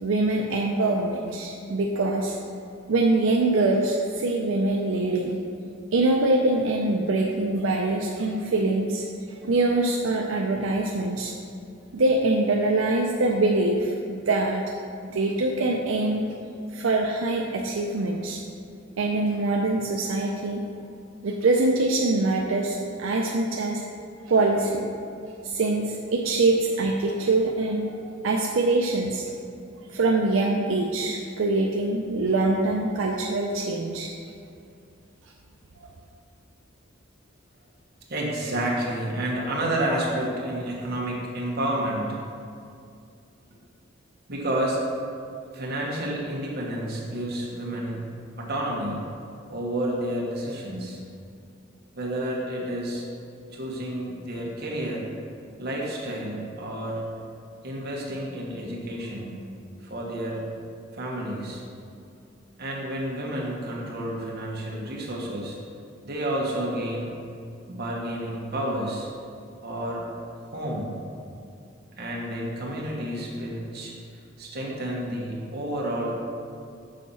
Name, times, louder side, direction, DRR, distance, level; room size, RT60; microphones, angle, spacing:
voice 1, 0.0-2.4 2.9-5.4 5.9-9.0 9.4-11.3 11.9-14.7 15.0-16.2 16.7-18.4 19.0-20.6 21.2-23.8 24.3-24.8 25.4-29.2 29.9-34.1 35.8-35.9, right 2 dB, 80° right, 0 dB, 0.5 m, -24 dB
voice 2, 38.1-42.2 44.3-44.8 45.5-48.0 48.4-49.1 49.5-51.0 51.9-53.0 53.5-55.1 55.6-57.0 57.6-59.4 59.8-60.4 60.9-61.6 62.6-65.6 66.0-67.1 67.7-69.1 69.6-70.0 70.4-71.0 72.0-73.9 74.4-76.2, right 1 dB, 55° right, -3 dB, 1.3 m, -30 dB
6.6 x 4.1 x 5.5 m, 2.4 s
head